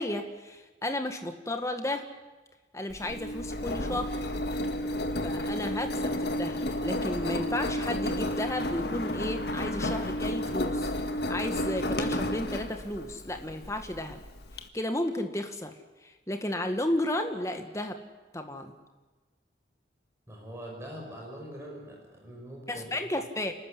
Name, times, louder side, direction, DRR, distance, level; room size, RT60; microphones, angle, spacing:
voice 1, 0.0-2.0 2.7-4.4 5.2-10.9 11.3-14.2 14.7-15.7 16.0-18.0 18.3-18.7 22.7-23.5, left 1 dB, 15° left, 6 dB, 1.8 m, -33 dB
Engine, 2.9-14.6, left 1 dB, 65° left, 1.8 m, -32 dB
voice 2, 20.3-23.1, equal, 15° right, -1 dB, 5.8 m, -43 dB
29.5 x 13.5 x 9.9 m, 1.2 s
head